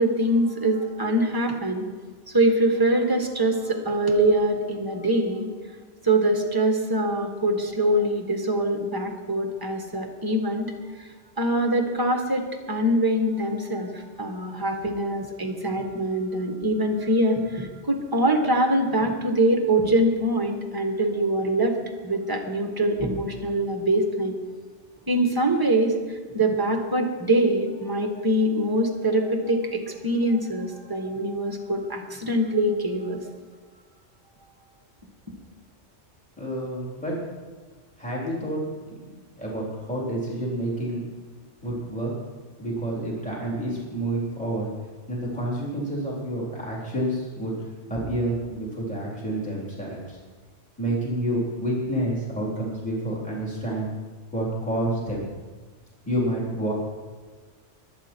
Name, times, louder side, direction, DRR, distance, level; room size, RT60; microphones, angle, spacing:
voice 1, 0.0-1.9 2.3-5.5 6.0-11.1 11.4-21.7 22.0-24.3 25.1-33.2, right 1 dB, 20° right, 3 dB, 1.5 m, -24 dB
voice 2, 36.4-37.2 38.0-38.6 39.0-39.1 39.4-41.1 41.6-42.1 42.6-44.7 45.1-50.2 50.8-53.9 54.3-55.2 56.1-56.7, right 1 dB, 5° left, -5 dB, 3.7 m, -29 dB
23.0 x 8.5 x 4.5 m, 1.4 s
omnidirectional pair, 1.2 m